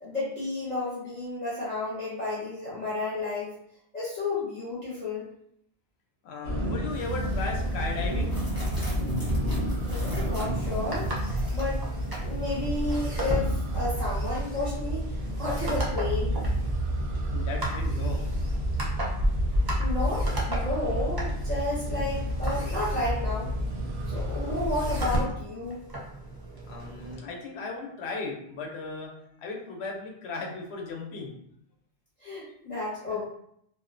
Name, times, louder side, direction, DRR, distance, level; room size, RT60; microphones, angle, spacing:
voice 1, 0.0-3.6 3.9-5.3 9.8-11.9 12.2-16.3 19.8-23.5 24.0-25.8 32.2-33.3, left 2 dB, 45° left, -9 dB, 0.8 m, -32 dB
voice 2, 6.2-8.3 17.3-18.2 20.5-20.6 26.7-29.1 29.4-31.3 33.1-33.2, left 3 dB, 80° left, 0 dB, 0.9 m, -36 dB
sound 1, 6.4-25.3, equal, 85° right, 0.9 m, -30 dB
sound 2, 7.0-14.0, equal, 5° right, 0.8 m, -44 dB
sound 3, 10.2-27.1, right 1 dB, 30° right, 0.4 m, -36 dB
2.5 x 2.1 x 2.4 m, 0.72 s
omnidirectional pair, 1.1 m